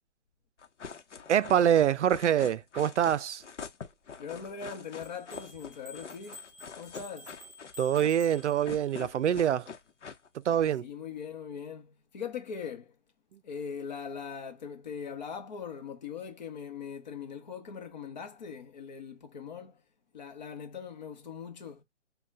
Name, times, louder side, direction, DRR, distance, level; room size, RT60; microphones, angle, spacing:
sound 1, 0.6-10.6, left 6 dB, 80° left, 0.9 m, -45 dB
voice 1, 1.3-3.4 7.8-9.7 10.5-10.8, right 9 dB, 75° right, 0.5 m, -25 dB
voice 2, 4.2-6.4 6.8-7.4 10.8-12.9 13.4-19.8 20.1-21.8, left 6 dB, 40° left, 0.9 m, -41 dB
sound 2, 5.0-9.0, left 2 dB, ahead, 1.9 m, -50 dB
5.2 x 2.3 x 2.4 m
hypercardioid pair, 155°, 35 cm